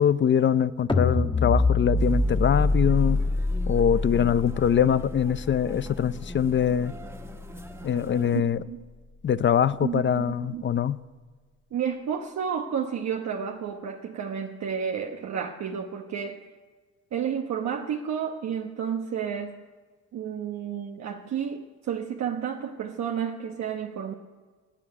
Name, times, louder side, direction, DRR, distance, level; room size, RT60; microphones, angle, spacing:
voice 1, 0.0-3.2 3.7-6.9 7.8-8.6 9.2-11.0, left 8 dB, 40° left, 16 dB, 0.6 m, -23 dB
sound 1, 0.9-7.2, left 2 dB, 15° left, 1.3 m, -26 dB
sound 2, 1.9-8.4, equal, 10° right, 1.8 m, -44 dB
voice 2, 8.3-8.9 9.8-10.6 11.7-16.5 17.1-19.6 20.1-24.1, right 8 dB, 60° right, 2 dB, 1.0 m, -31 dB
17.5 x 8.7 x 9.5 m, 1.4 s
cardioid pair, 90°, 30 cm